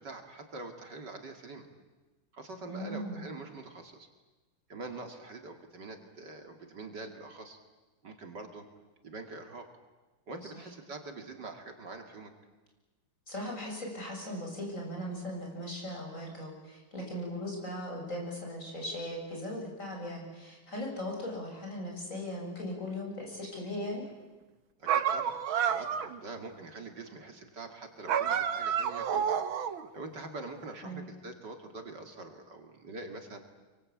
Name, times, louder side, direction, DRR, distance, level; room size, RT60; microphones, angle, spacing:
voice 1, 0.0-1.7 2.3-4.1 4.7-7.6 8.0-8.6 9.0-9.7 10.3-12.3 24.8-25.4 25.7-29.4 29.6-33.4, right 3 dB, 60° right, 5 dB, 2.9 m, -44 dB
voice 2, 2.7-3.2 13.3-24.0 30.8-31.0, left 1 dB, 40° left, -1 dB, 7.6 m, -38 dB
sound 1, 24.9-26.2 28.1-29.9, right 8 dB, 80° right, 2.0 m, -29 dB
27.5 x 24.0 x 8.7 m, 1.2 s
omnidirectional pair, 2.2 m